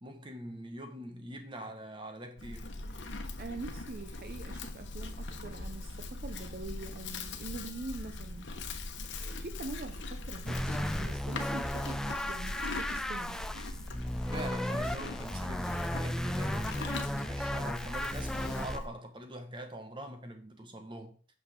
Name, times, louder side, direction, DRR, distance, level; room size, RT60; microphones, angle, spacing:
voice 1, 0.0-2.7 14.3-21.2, right 1 dB, 25° right, 1.2 m, -43 dB
Livestock farm animals working animals, 2.4-18.9, left 2 dB, 75° left, 1.1 m, -41 dB
voice 2, 2.9-13.4, right 2 dB, 50° right, 0.5 m, -44 dB
sound 1, 10.5-18.8, left 1 dB, 5° left, 0.3 m, -35 dB
8.7 x 6.1 x 3.6 m
head